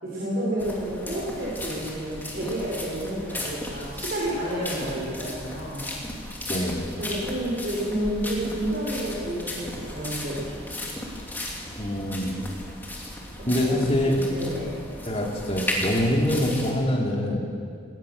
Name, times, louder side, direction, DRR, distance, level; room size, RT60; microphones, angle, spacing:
voice 1, 0.0-5.9 6.9-10.6 13.4-13.7 14.3-14.8, right 1 dB, 50° right, -7 dB, 5.6 m, -30 dB
sound 1, 0.6-16.7, left 1 dB, 10° left, 2.9 m, -35 dB
voice 2, 6.5-6.9 11.8-12.3 13.5-14.2 15.1-17.4, left 1 dB, 30° left, -1 dB, 3.1 m, -24 dB
20.5 x 19.0 x 6.8 m, 2.3 s
head